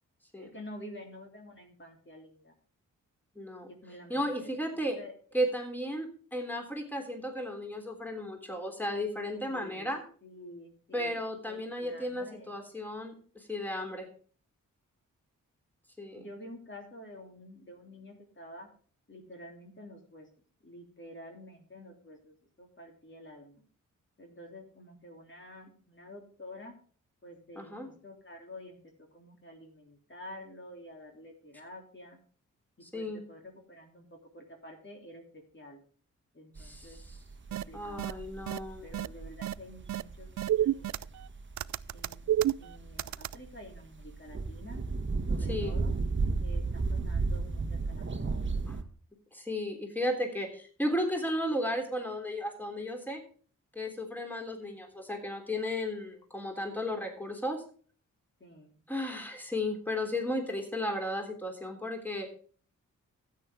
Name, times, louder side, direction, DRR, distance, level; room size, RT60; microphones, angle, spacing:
voice 1, 0.4-2.5 3.6-4.6 4.8-5.1 9.3-9.9 10.2-12.6 16.1-18.7 19.1-20.3 20.6-23.6 24.2-26.7 27.2-28.8 29.1-32.2 32.9-34.1 34.3-35.8 36.3-37.0 37.5-41.1 41.9-44.8 45.3-45.9 46.4-48.5 58.4-58.7, left 1 dB, 35° left, 1 dB, 3.2 m, -49 dB
voice 2, 3.3-3.7 4.1-5.0 5.3-10.0 10.9-14.1 16.0-16.3 27.5-27.9 32.8-33.2 36.6-37.0 37.7-38.9 45.5-45.7 48.7-48.8 49.3-53.2 53.7-57.6 58.9-62.3, left 1 dB, 5° left, 3 dB, 3.4 m, -34 dB
sound 1, 36.6-48.8, right 3 dB, 35° right, 1.3 m, -34 dB
sound 2, 37.5-37.6 38.0-38.1 38.5-38.6 38.9-39.1 39.4-39.5 39.9-40.0 40.4-41.3 41.6-43.4, right 12 dB, 55° right, 0.4 m, -29 dB
13.0 x 8.8 x 3.6 m, 0.43 s
supercardioid pair, 45°, 34 cm